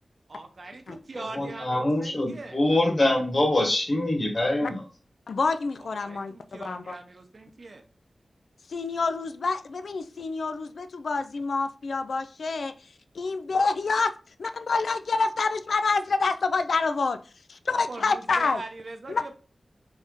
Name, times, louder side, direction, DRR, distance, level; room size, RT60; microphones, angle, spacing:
voice 1, 0.3-2.6 5.8-7.8 17.7-19.3, right 3 dB, 60° right, 6 dB, 0.7 m, -42 dB
voice 2, 1.1-4.8, left 1 dB, 50° left, 0 dB, 1.4 m, -24 dB
voice 3, 5.3-6.9 8.7-12.7 13.1-14.1 14.4-17.2 17.5-18.6 19.1-19.3, left 4 dB, 80° left, 10 dB, 0.3 m, -27 dB
3.5 x 2.6 x 3.6 m, 0.36 s
cardioid pair, 50°, 0 cm